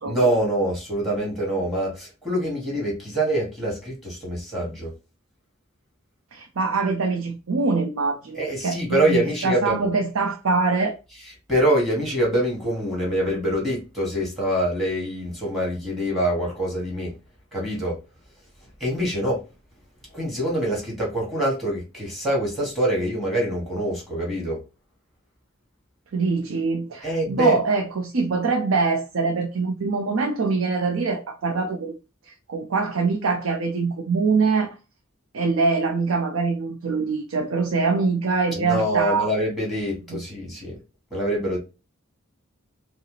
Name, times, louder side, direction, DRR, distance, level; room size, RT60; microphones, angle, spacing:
voice 1, 0.1-4.9 8.4-9.9 11.5-17.1 17.5-18.0 18.8-19.4 20.1-24.6 27.0-27.6 38.5-40.8 41.1-41.6, right 1 dB, ahead, 1.9 m, -25 dB
voice 2, 6.3-11.0 26.1-31.9 32.5-34.7 35.3-39.3 40.1-40.2, right 4 dB, 75° right, 0.6 m, -24 dB
4.7 x 2.0 x 3.2 m
head